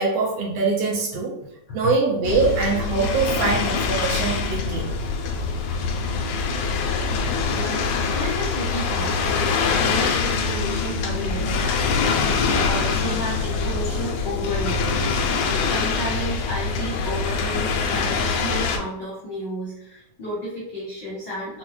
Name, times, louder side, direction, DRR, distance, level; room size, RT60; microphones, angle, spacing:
voice 1, 0.0-1.3 1.7-4.9, right 4 dB, 70° right, -4 dB, 2.3 m, -23 dB
sound 1, 2.2-18.8, left 4 dB, 80° left, 1.4 m, -24 dB
voice 2, 7.4-15.3 15.6-21.6, equal, 65° left, -7 dB, 1.1 m, -32 dB
5.2 x 2.1 x 3.1 m, 0.81 s
omnidirectional pair, 3.4 m